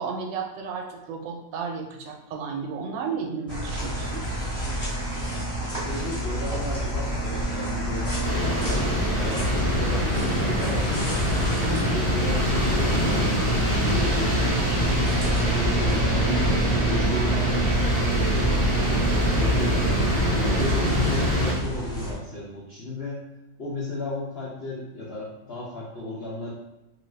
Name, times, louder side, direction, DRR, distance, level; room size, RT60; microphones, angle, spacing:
voice 1, 0.0-4.2, right 5 dB, 80° right, 2 dB, 1.2 m, -33 dB
sound 1, 3.5-22.1, right 1 dB, 10° left, 1.2 m, -28 dB
voice 2, 5.6-11.2 11.6-13.4 13.7-16.5 16.8-18.6 19.1-23.2 23.6-26.5, left 1 dB, 70° left, -8 dB, 0.6 m, -34 dB
Vehicle, 5.9-18.2, left 2 dB, 85° left, 1.3 m, -34 dB
sound 2, 8.2-21.5, equal, 35° left, 1.1 m, -25 dB
2.8 x 2.7 x 3.1 m, 0.96 s
omnidirectional pair, 2.0 m